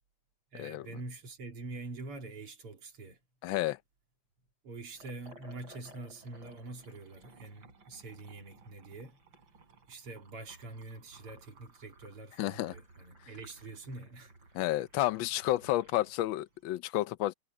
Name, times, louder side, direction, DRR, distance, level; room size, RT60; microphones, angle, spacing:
voice 1, 0.5-3.2 4.6-9.2 9.9-14.3, right 2 dB, 90° right, 3.8 m, -45 dB
voice 2, 3.4-3.8 12.4-12.7 14.5-17.3, left 15 dB, 70° left, 1.3 m, -31 dB
Liquid, 4.9-16.2, right 2 dB, 60° right, 6.0 m, -57 dB
omnidirectional pair, 2.4 m